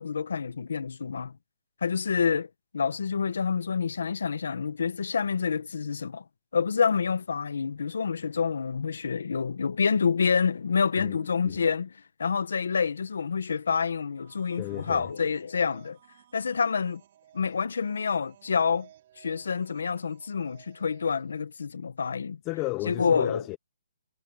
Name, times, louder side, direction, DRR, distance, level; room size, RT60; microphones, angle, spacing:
voice 1, 0.0-1.3 1.8-2.5 2.7-6.2 6.5-11.9 12.2-16.0 16.3-17.0 17.3-18.9 19.2-22.4 22.8-23.4, left 6 dB, 70° left, 1.4 m, -27 dB
voice 2, 11.0-11.5 14.6-15.1 22.4-23.6, left 21 dB, 15° left, 0.6 m, -34 dB
sound 1, 14.0-21.4, right 12 dB, 30° right, 6.1 m, -57 dB
hypercardioid pair, 175°, 0 cm